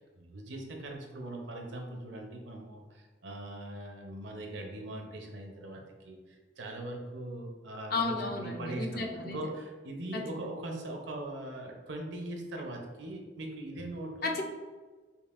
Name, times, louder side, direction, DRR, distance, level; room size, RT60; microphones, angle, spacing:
voice 1, 0.0-14.3, right 1 dB, 70° right, 2 dB, 0.6 m, -41 dB
voice 2, 7.9-9.4 10.1-10.2 14.2-14.4, left 3 dB, 50° left, 2 dB, 0.5 m, -33 dB
5.3 x 2.4 x 2.4 m, 1.3 s
head